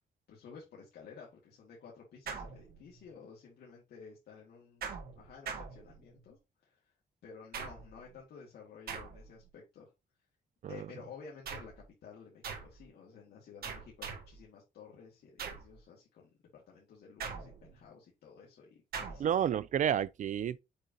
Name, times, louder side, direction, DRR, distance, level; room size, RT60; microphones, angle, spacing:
voice 1, 0.3-4.8 5.2-6.9 7.2-9.9 10.7-19.3, left 6 dB, 80° left, 2.1 m, -53 dB
sound 1, 2.3-3.1 4.8-6.3 7.5-8.1 8.9-9.5 11.4-11.9 12.4-12.8 13.6-14.4 15.4-15.8 17.2-17.8 18.9-19.4, right 6 dB, 70° right, 1.7 m, -43 dB
voice 2, 19.2-20.6, right 9 dB, 50° right, 0.4 m, -30 dB
6.6 x 5.2 x 2.8 m
cardioid pair, 125°, 16 cm